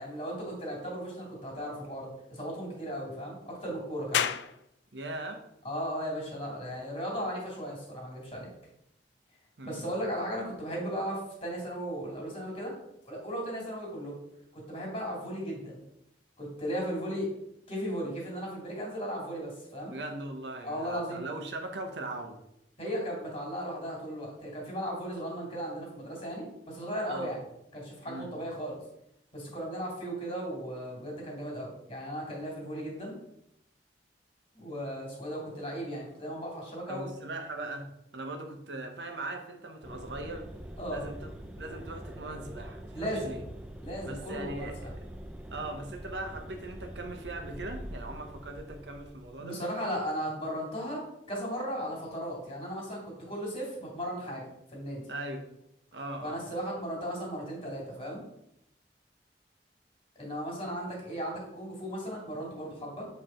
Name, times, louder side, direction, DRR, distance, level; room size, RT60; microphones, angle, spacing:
voice 1, 0.0-4.3 5.6-8.5 9.6-12.7 13.1-14.2 14.5-15.8 16.4-17.3 17.7-19.9 20.6-21.2 22.8-27.4 27.7-28.8 29.3-33.2 34.5-37.1 40.8-41.1 42.9-43.4 43.8-44.9 49.4-55.0 56.2-58.2 60.2-63.1, equal, 35° left, -2 dB, 2.3 m, -36 dB
sound 1, 4.1-17.3, left 9 dB, 75° left, 0.3 m, -42 dB
voice 2, 4.9-5.4 9.6-9.9 19.9-22.4 27.1-27.4 28.0-28.3 36.9-37.9 38.1-40.5 40.9-41.3 41.6-43.4 44.1-44.7 45.5-49.6 55.1-55.5 55.9-56.4, right 2 dB, 80° right, 4 dB, 0.9 m, -39 dB
sound 2, 39.8-49.5, right 1 dB, 5° right, 0.4 m, -44 dB
7.7 x 3.2 x 4.3 m, 0.79 s
head